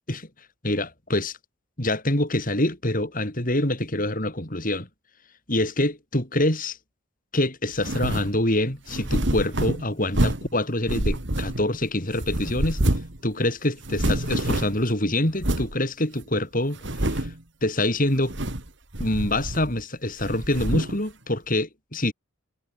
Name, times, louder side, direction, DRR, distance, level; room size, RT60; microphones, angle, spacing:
voice 1, 0.6-1.4 1.8-4.9 5.5-6.8 7.3-12.8 13.2-16.8 17.0-17.3 17.6-18.3 19.0-22.1, left 1 dB, 40° left, 5.2 m, -25 dB
sound 1, 7.8-8.3 8.9-10.5 10.9-11.8 12.2-13.2 13.4-13.5 13.8-14.9 15.4-15.7 16.2-16.3 16.8-17.4 18.2-18.7 18.9-19.8 20.2-21.0, right 1 dB, 60° right, 2.6 m, -27 dB
head